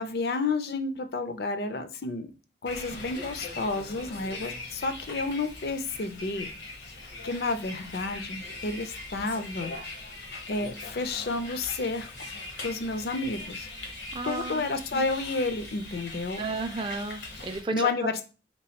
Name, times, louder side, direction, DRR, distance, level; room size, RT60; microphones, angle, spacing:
voice 1, 0.0-2.3 2.6-6.5 7.2-9.7 10.5-12.1 12.6-13.7 14.2-16.4 17.7-18.2, left 3 dB, 65° left, 0.5 m, -31 dB
Bus, 2.7-17.6, left 2 dB, 85° left, 1.1 m, -41 dB
voice 2, 14.1-14.6 14.9-15.0 16.4-17.9, right 3 dB, 30° right, 0.4 m, -33 dB
3.7 x 3.0 x 2.8 m
head